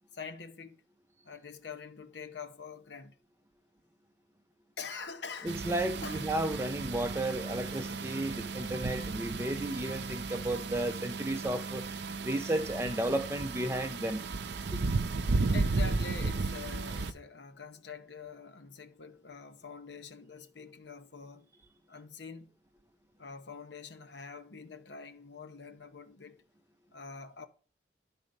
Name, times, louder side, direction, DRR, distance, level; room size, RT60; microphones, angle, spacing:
voice 1, 0.1-0.8 1.2-3.2 4.8-5.7 6.0-6.3 15.5-21.5 21.9-22.5 23.2-26.4 26.9-27.5, left 5 dB, 65° left, 0.8 m, -45 dB
voice 2, 5.4-11.8 12.2-14.3 14.7-14.8, right 1 dB, 15° right, 0.6 m, -33 dB
sound 1, 5.5-17.1, right 3 dB, 60° right, 0.6 m, -34 dB
11.5 x 4.1 x 5.3 m
head